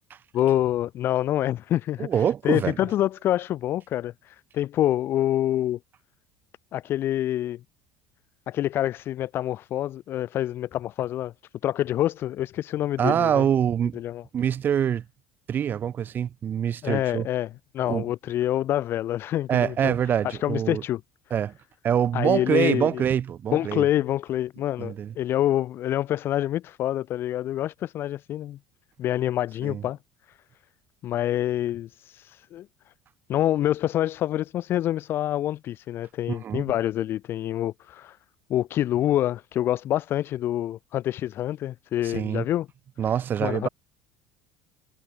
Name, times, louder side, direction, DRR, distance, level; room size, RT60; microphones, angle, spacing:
voice 1, 0.3-5.8 6.7-7.6 8.5-11.3 11.6-13.4 13.9-14.2 16.8-19.9 20.2-21.0 22.1-23.0 23.5-28.6 29.0-30.0 31.0-32.7 33.3-38.2 38.5-42.7 43.4-43.7, left 12 dB, 45° left, 0.3 m, -26 dB
voice 2, 2.0-2.8 13.0-14.0 14.3-15.0 15.5-17.3 17.9-18.1 19.5-20.8 21.3-21.5 21.8-23.9 24.8-25.1 29.6-29.8 36.3-36.6 42.0-42.4 43.0-43.7, right 9 dB, 40° right, 1.2 m, -25 dB
cardioid pair, 120°, 5 cm